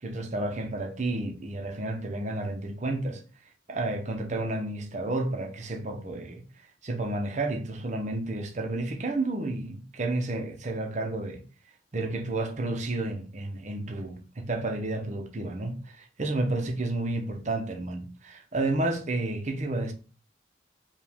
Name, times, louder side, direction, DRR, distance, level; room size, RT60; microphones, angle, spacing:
voice 1, 0.0-3.2 3.7-6.4 6.8-11.4 11.9-19.9, right 2 dB, 40° right, 0.7 m, -31 dB
4.9 x 2.4 x 3.5 m
head